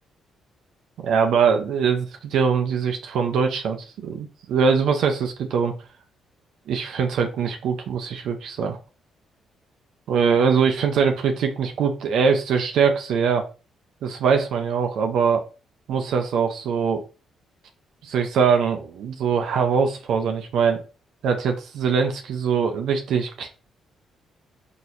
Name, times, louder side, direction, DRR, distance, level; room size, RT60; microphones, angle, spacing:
voice 1, 1.0-5.8 6.7-8.8 10.1-13.4 14.0-15.4 15.9-17.0 18.0-20.8 21.2-23.5, right 6 dB, 75° right, 4 dB, 0.6 m, -22 dB
3.9 x 2.9 x 2.5 m, 0.34 s
cardioid pair, 90°, 0 cm